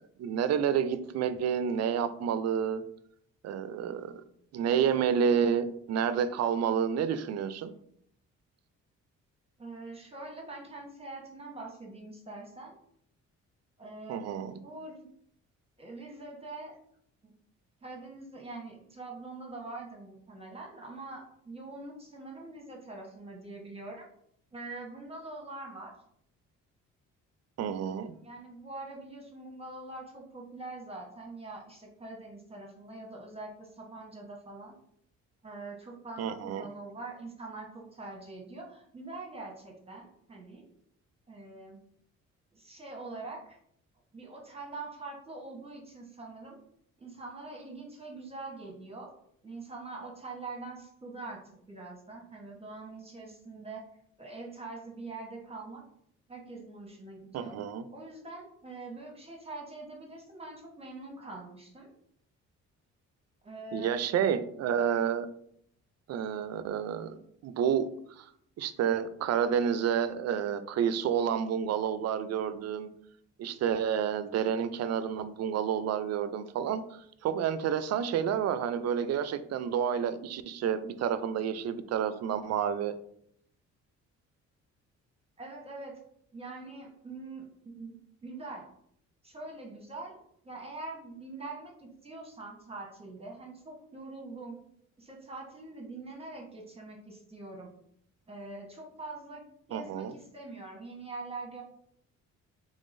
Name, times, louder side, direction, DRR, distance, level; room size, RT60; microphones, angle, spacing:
voice 1, 0.2-2.8 3.4-4.1 4.5-7.7 14.1-14.5 27.6-28.1 36.2-36.7 57.3-57.8 63.7-65.3 66.1-67.9 68.2-68.3 68.6-72.9 73.4-82.9 99.7-100.1, right 8 dB, 60° right, 12 dB, 0.4 m, -29 dB
voice 2, 9.6-12.7 13.8-15.1 15.8-16.8 17.2-17.3 17.8-24.0 24.5-25.9 28.2-34.8 35.4-40.6 41.3-41.8 42.5-43.6 44.1-46.6 47.0-49.1 49.4-53.9 54.2-55.8 56.3-57.6 57.9-61.9 63.4-63.9 85.4-86.0 86.3-87.9 88.2-88.7 89.2-94.6 95.0-97.7 98.3-99.4 99.7-101.6, right 3 dB, 20° right, 0 dB, 1.0 m, -44 dB
3.7 x 3.4 x 2.5 m, 0.68 s
cardioid pair, 90°, 30 cm